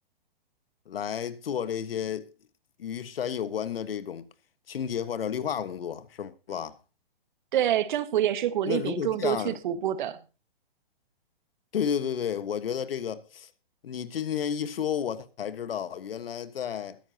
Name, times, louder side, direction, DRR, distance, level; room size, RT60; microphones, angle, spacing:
voice 1, 0.9-2.3 2.8-4.3 4.7-6.8 8.7-9.6 11.7-13.5 13.8-17.0, left 8 dB, 70° left, 1.4 m, -32 dB
voice 2, 7.5-10.2, right 11 dB, 50° right, 1.4 m, -27 dB
21.0 x 10.5 x 2.8 m
hypercardioid pair, 135°, 30 cm